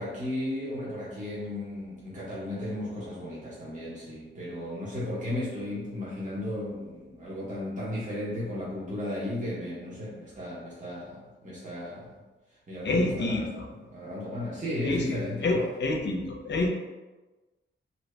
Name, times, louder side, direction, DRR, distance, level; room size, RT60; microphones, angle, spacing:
voice 1, 0.0-11.2 11.4-12.2 12.7-15.7, left 1 dB, 35° right, -8 dB, 1.1 m, -35 dB
voice 2, 12.8-13.4 14.8-16.7, left 2 dB, 60° left, 1 dB, 0.6 m, -28 dB
2.7 x 2.7 x 3.3 m, 1.2 s
wide cardioid pair, 130°, 21 cm